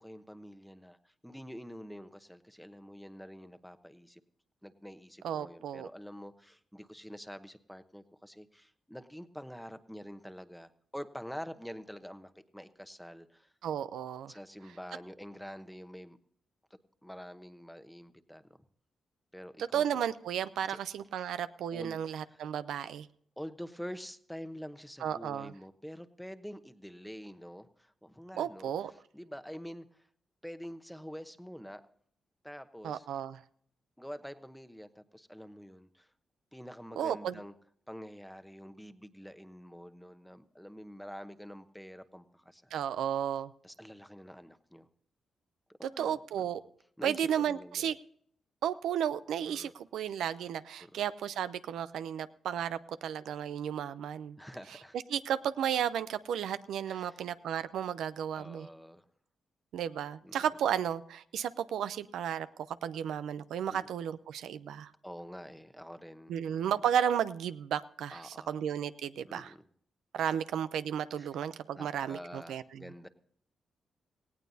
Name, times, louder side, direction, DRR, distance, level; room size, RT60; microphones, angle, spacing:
voice 1, 0.0-4.2 4.6-13.5 14.3-16.2 17.0-18.4 19.3-19.8 20.7-20.8 21.7-22.0 22.3-22.4 23.4-28.7 29.1-30.1 30.4-31.8 32.4-33.1 34.0-36.1 36.5-37.5 37.9-42.7 43.6-44.9 45.8-46.2 47.0-47.9 49.5-49.7 50.8-51.0 54.4-55.0 56.8-57.2 58.3-59.0 60.2-60.3 63.7-63.9 65.0-66.6 68.1-68.6 69.2-69.7 71.2-71.3 71.7-73.1, equal, ahead, 10 dB, 0.9 m, -46 dB
voice 2, 5.2-5.9 13.6-14.3 19.6-23.1 25.0-25.5 28.3-28.9 32.8-33.4 37.0-37.4 42.7-43.5 45.8-46.6 47.0-48.0 48.6-54.4 55.1-58.7 59.7-64.9 66.3-69.5 70.1-72.9, right 9 dB, 85° right, 13 dB, 0.5 m, -33 dB
18.0 x 16.5 x 2.7 m, 0.63 s
cardioid pair, 85°, 0 cm